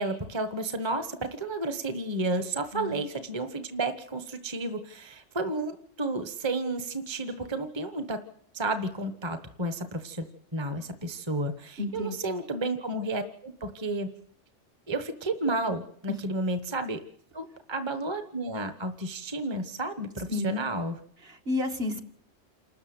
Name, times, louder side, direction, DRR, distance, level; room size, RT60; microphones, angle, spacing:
voice 1, 0.0-8.2 8.5-10.3 10.5-14.1 14.9-17.0 17.3-21.0, right 2 dB, 20° right, 8 dB, 1.3 m, -32 dB
voice 2, 2.7-3.1 11.8-12.2 20.3-20.6 21.2-22.0, left 2 dB, 50° right, 4 dB, 2.3 m, -31 dB
28.5 x 13.5 x 7.9 m, 0.66 s
omnidirectional pair, 1.3 m